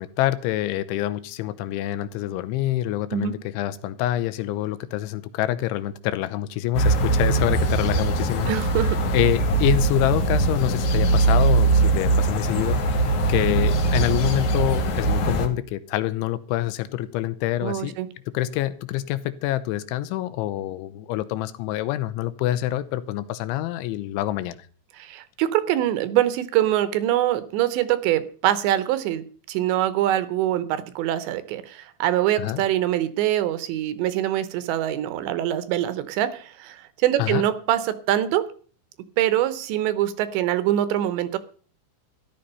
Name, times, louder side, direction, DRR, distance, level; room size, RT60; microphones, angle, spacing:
voice 1, 0.0-8.5 9.1-18.0 18.3-24.7 32.4-32.6 37.2-37.4, left 14 dB, 80° left, 3.2 m, -26 dB
sound 1, 6.7-15.5, right 3 dB, 60° left, 2.1 m, -21 dB
voice 2, 8.5-9.0 17.6-18.1 24.9-38.5 39.2-41.4, right 12 dB, 75° right, 3.1 m, -24 dB
14.0 x 12.0 x 5.5 m
omnidirectional pair, 5.5 m